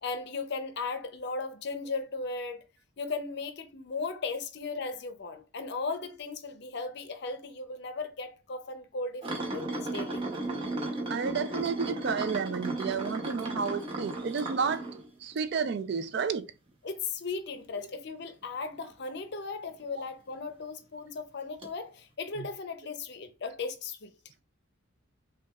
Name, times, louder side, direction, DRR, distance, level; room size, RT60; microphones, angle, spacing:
voice 1, 0.0-2.6 3.0-10.3 16.8-24.1, left 4 dB, 55° left, 0.5 m, -36 dB
sound 1, 9.2-15.7 16.2-16.4 19.8-19.9 21.6-21.7, right 2 dB, 25° right, 0.7 m, -35 dB
voice 2, 11.1-14.9 15.2-16.5 22.4-22.5, right 5 dB, 55° right, 0.3 m, -31 dB
5.9 x 2.3 x 2.3 m
head